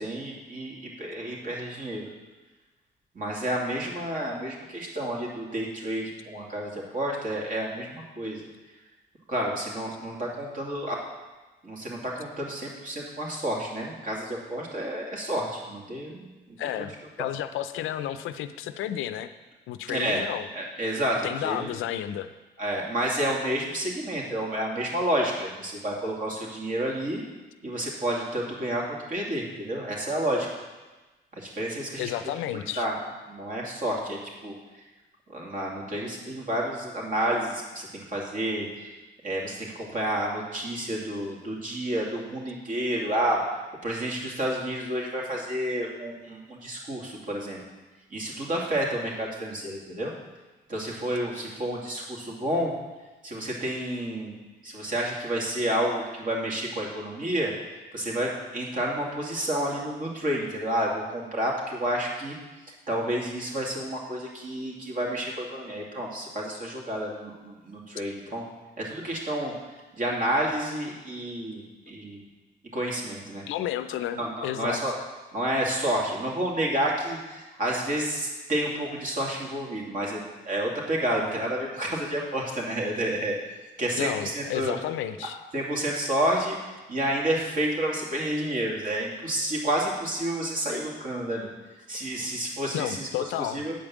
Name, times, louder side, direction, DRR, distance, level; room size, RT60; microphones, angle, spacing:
voice 1, 0.0-2.1 3.1-8.4 9.3-11.0 11.6-16.3 16.8-16.9 17.2-17.3 19.9-20.2 20.5-21.7 22.6-27.2 27.6-28.8 29.1-30.5 31.3-32.1 32.7-32.9 33.3-34.6 35.3-38.9 39.2-43.4 43.8-47.6 48.1-50.1 50.7-52.7 53.2-57.5 57.9-62.3 62.7-68.4 68.8-69.5 70.0-72.2 72.7-73.4 74.1-74.9 75.3-80.2 80.4-83.3 83.8-84.8 85.5-86.6 86.9-91.5 91.9-93.1 93.4-93.7, right 1 dB, 45° right, -2 dB, 2.8 m, -30 dB
voice 2, 16.6-16.9 17.2-19.3 19.7-20.5 21.2-22.3 32.0-32.9 68.0-68.1 73.4-74.8 84.0-85.4 92.7-93.6, left 11 dB, 90° left, 11 dB, 0.6 m, -32 dB
9.1 x 5.2 x 7.3 m, 1.2 s
cardioid pair, 90°, 20 cm